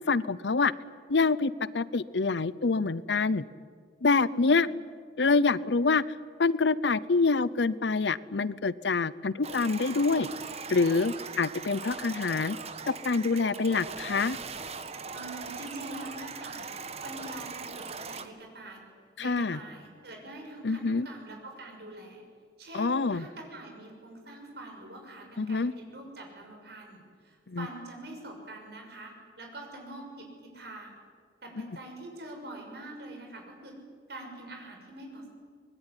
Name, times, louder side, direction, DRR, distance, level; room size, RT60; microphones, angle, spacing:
voice 1, 0.1-0.7 1.1-3.4 4.0-4.7 5.2-10.3 10.7-12.6 12.9-14.4 19.2-19.6 20.6-21.1 22.7-23.3 25.4-25.7 27.5-27.7 31.6-31.8, left 4 dB, 75° left, 19 dB, 0.7 m, -26 dB
voice 2, 4.3-4.8 15.1-16.7 17.0-18.8 19.2-22.2 22.6-31.0 31.4-33.8 34.1-35.3, right 2 dB, 60° right, 2 dB, 6.4 m, -44 dB
sound 1, 9.4-18.3, right 5 dB, 35° right, 1.3 m, -40 dB
24.5 x 21.0 x 10.0 m, 2.1 s
head